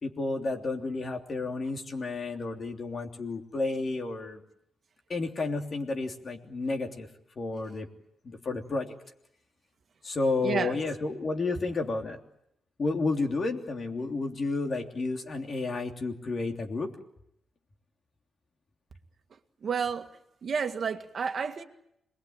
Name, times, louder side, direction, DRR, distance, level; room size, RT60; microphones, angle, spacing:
voice 1, 0.0-4.4 5.1-7.1 7.4-7.9 8.2-8.9 10.0-12.2 12.8-16.9, left 3 dB, 40° left, 3.2 m, -31 dB
voice 2, 10.4-10.8 19.6-20.1 20.4-21.6, right 6 dB, 45° right, 2.0 m, -30 dB
27.0 x 21.0 x 9.0 m
wide cardioid pair, 150°, 0 cm